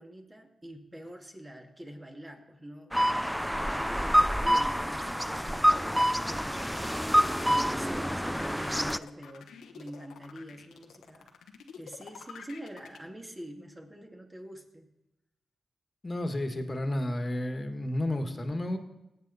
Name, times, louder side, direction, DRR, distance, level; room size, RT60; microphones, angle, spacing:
voice 1, 0.0-3.1 3.7-11.3 11.8-14.9, equal, 25° right, 2 dB, 2.2 m, -45 dB
sound 1, 2.9-9.0, equal, ahead, 0.4 m, -27 dB
sound 2, 3.9-13.0, left 7 dB, 85° left, 1.0 m, -49 dB
voice 2, 16.0-18.8, left 1 dB, 35° left, 6 dB, 1.6 m, -31 dB
18.0 x 7.9 x 4.1 m, 0.93 s
supercardioid pair, 45°, 0 cm